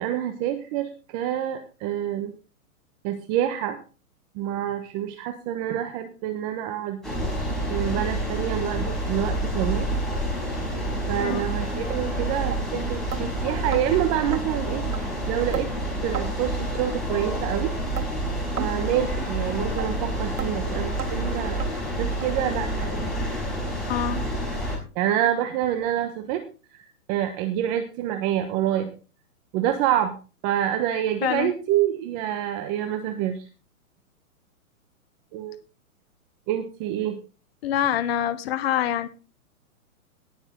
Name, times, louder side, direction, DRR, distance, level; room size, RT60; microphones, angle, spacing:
voice 1, 0.0-2.3 3.0-3.8 4.3-7.0 7.7-9.9 11.1-14.8 15.3-15.7 16.0-17.7 18.6-23.0 24.9-26.4 26.7-28.9 29.5-30.1 30.4-33.4 35.3-35.6 36.5-37.2, right 11 dB, 30° right, 7 dB, 1.3 m, -27 dB
sound 1, 7.0-24.8, right 1 dB, ahead, 5.3 m, -28 dB
sound 2, 11.3-11.4 11.9-12.0 12.5-12.6 13.1-13.2 13.7-13.8 14.3-14.4 14.9-15.0 15.5-15.7 16.1-16.3 16.7-16.9 17.4-17.5 17.9-18.1 18.6-18.7 19.2-19.3 19.8-19.9 20.4-20.5 21.0-21.1 21.6-21.7 22.2-22.3 22.8-22.9 23.4-23.5 24.0-24.1, right 7 dB, 90° right, 2.0 m, -33 dB
voice 2, 23.9-24.2 31.2-31.5 37.6-39.1, left 10 dB, 45° left, 12 dB, 1.1 m, -25 dB
18.5 x 7.2 x 3.8 m, 0.34 s
hypercardioid pair, 145°, 43 cm